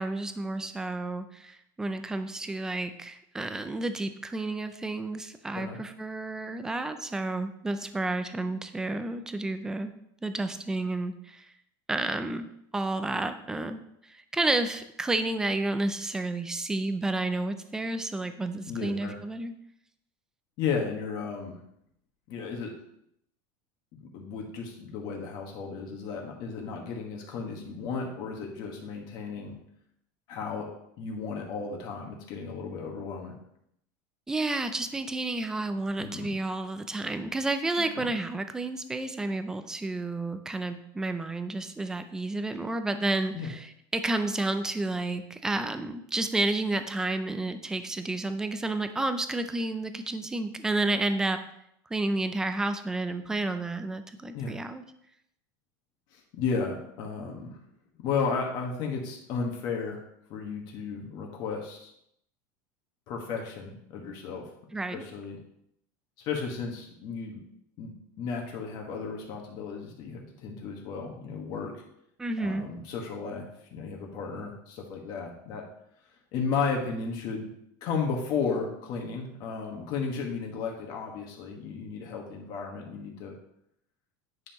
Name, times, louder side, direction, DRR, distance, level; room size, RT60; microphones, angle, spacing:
voice 1, 0.0-9.9 10.2-11.5 11.9-19.6 34.3-51.4 51.9-54.8 64.7-65.0 72.2-72.7, right 2 dB, 5° right, 9 dB, 0.3 m, -31 dB
voice 2, 18.7-19.2 20.6-21.6 22.3-22.7 23.9-29.5 30.3-30.7 31.0-33.3 36.0-36.3 37.8-38.1 43.3-43.5 54.3-54.6 56.1-57.6 58.0-60.0 60.3-61.9 63.1-64.4 64.9-65.4 66.2-67.4 67.8-67.9 68.2-71.7 72.4-75.6 76.3-77.5 77.8-83.3, left 5 dB, 40° left, 1 dB, 1.5 m, -34 dB
9.5 x 5.6 x 3.0 m, 0.75 s
supercardioid pair, 170°, 10 cm